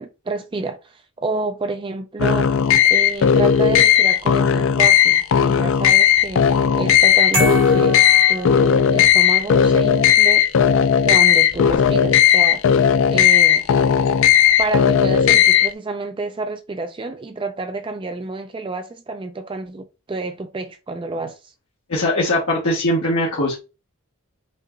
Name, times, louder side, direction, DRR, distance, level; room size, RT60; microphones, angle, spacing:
voice 1, 0.0-2.5 2.9-6.5 6.8-8.0 8.3-10.5 11.0-12.6 13.1-13.7 14.6-21.4, right 3 dB, 20° right, 0.3 m, -29 dB
sound 1, 2.2-15.7, left 8 dB, 55° left, 0.3 m, -15 dB
sound 2, 7.3-9.2, left 1 dB, 40° right, 1.7 m, -26 dB
voice 2, 21.9-23.6, left 1 dB, 70° left, 1.2 m, -20 dB
5.4 x 2.9 x 2.5 m
head